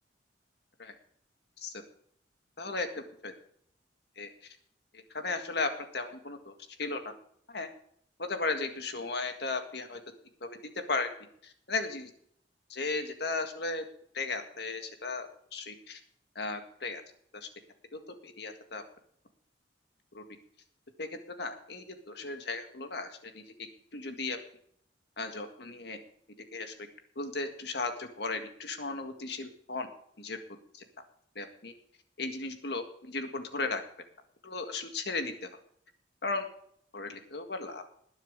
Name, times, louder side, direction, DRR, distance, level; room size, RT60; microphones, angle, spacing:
voice 1, 2.6-3.3 4.2-4.6 4.9-6.5 6.8-7.1 7.5-7.7 8.2-10.0 10.4-10.5 10.9-11.1 11.4-12.1 12.7-13.8 14.1-16.0 16.4-17.0 17.3-17.5 17.9-18.8 20.1-20.2 21.0-21.1 21.4-23.7 23.9-24.4 25.2-26.0 26.5-26.7 27.2-29.9 30.2-30.4 30.7-30.8 31.4-31.7 32.2-33.8 34.4-35.5 36.2-36.4 36.9-37.8, left 3 dB, 65° left, 6 dB, 1.8 m, -36 dB
20.0 x 7.4 x 5.1 m, 0.66 s
head